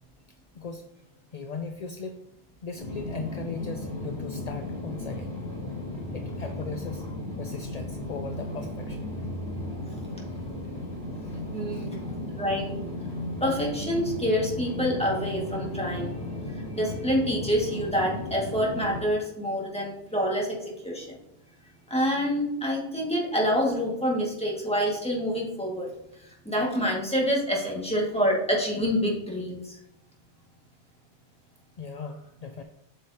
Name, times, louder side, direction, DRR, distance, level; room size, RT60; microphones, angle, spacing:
voice 1, 1.3-2.2 2.6-5.4 6.1-9.0 11.7-11.9 31.8-32.6, left 5 dB, 50° left, 6 dB, 0.5 m, -38 dB
sound 1, 2.8-19.0, left 1 dB, 75° left, 3.1 m, -35 dB
voice 2, 11.5-12.0 12.4-12.7 13.4-16.1 16.7-21.2 21.9-25.9 26.5-29.8, equal, 5° left, -3 dB, 1.9 m, -27 dB
8.2 x 6.4 x 2.9 m, 0.84 s
omnidirectional pair, 1.1 m